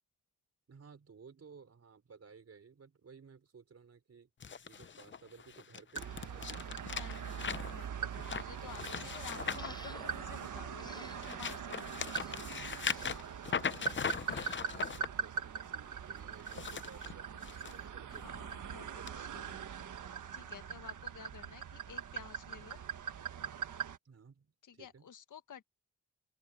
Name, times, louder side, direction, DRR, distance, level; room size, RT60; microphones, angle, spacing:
voice 1, 0.7-4.3 4.6-6.8 8.7-9.1 14.6-18.4 18.8-19.9 24.0-25.1, right 5 dB, 55° right, 5.1 m, -57 dB
sound 1, 4.4-10.5 11.0-15.1 16.3-17.7 18.2-18.4 19.1-19.2, left 6 dB, 40° left, 0.7 m, -40 dB
sound 2, 6.0-24.0, right 7 dB, 80° right, 1.5 m, -42 dB
voice 2, 6.8-12.5 18.1-19.6 20.3-22.8 24.6-25.6, left 8 dB, 80° left, 1.8 m, -52 dB
sound 3, 9.6-10.1 10.8-11.3 12.1-12.4 12.8-13.2 14.1-14.6, left 1 dB, 15° left, 6.3 m, -52 dB
open air
cardioid pair, 85°, 30 cm